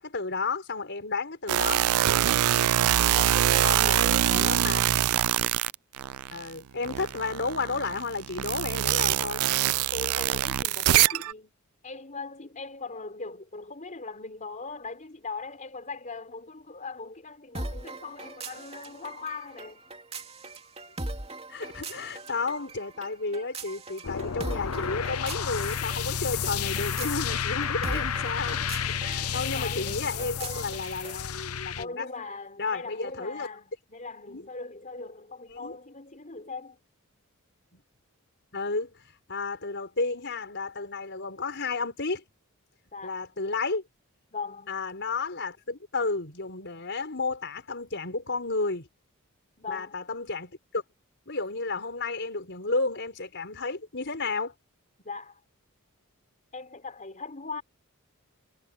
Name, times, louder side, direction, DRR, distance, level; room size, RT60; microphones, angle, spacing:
voice 1, 0.0-1.8 3.6-4.8 6.3-9.4 21.5-32.1 32.6-33.5 34.3-34.4 35.5-35.7 37.7-37.8 38.5-38.9 39.3-42.2 43.0-43.8 44.7-48.9 49.6-50.8 51.3-54.5, left 3 dB, 55° left, 5.5 m, -32 dB
sound 1, 1.5-6.5 6.8-11.3, right 12 dB, 75° right, 0.4 m, -24 dB
voice 2, 3.1-4.6 9.9-11.5 11.8-19.8 29.1-30.7 31.8-36.8 42.9-43.2 44.3-44.8 49.6-50.0 55.0-55.4 56.5-57.6, left 4 dB, 35° left, 4.2 m, -40 dB
sound 2, 17.5-31.3, right 2 dB, 30° right, 2.6 m, -41 dB
sound 3, 24.0-31.8, left 7 dB, 85° left, 0.8 m, -31 dB
head